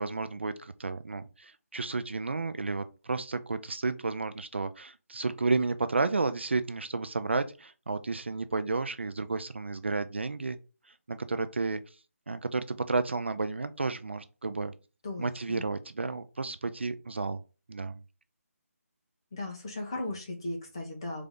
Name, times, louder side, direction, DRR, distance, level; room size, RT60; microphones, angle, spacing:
voice 1, 0.0-10.6 10.9-11.8 12.3-14.7 15.2-17.4 17.7-18.0, right 3 dB, 50° right, 0.4 m, -32 dB
voice 2, 15.0-15.7 19.3-21.3, left 2 dB, 20° left, 0.8 m, -37 dB
3.8 x 3.4 x 3.6 m
figure-of-eight pair, 180°, 8 cm